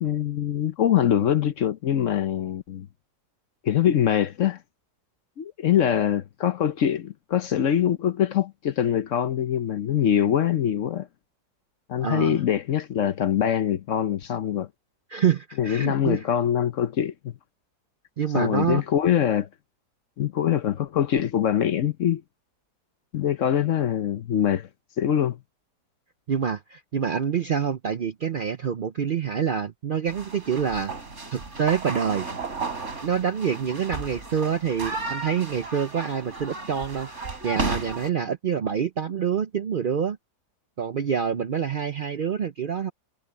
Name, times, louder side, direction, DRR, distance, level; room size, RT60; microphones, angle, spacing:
voice 1, 0.0-2.9 3.6-4.6 5.4-11.1 11.9-14.7 15.6-17.3 18.3-19.5 20.2-22.2 23.1-24.7 25.0-25.4, left 9 dB, 60° left, 0.9 m, -23 dB
voice 2, 12.0-12.4 15.1-16.2 18.2-18.8 26.3-30.9 31.3-32.3 33.0-37.1 37.4-40.2 40.8-42.9, right 7 dB, 85° right, 0.4 m, -26 dB
sound 1, 30.1-38.1, right 3 dB, 45° right, 3.8 m, -34 dB
omnidirectional pair, 1.8 m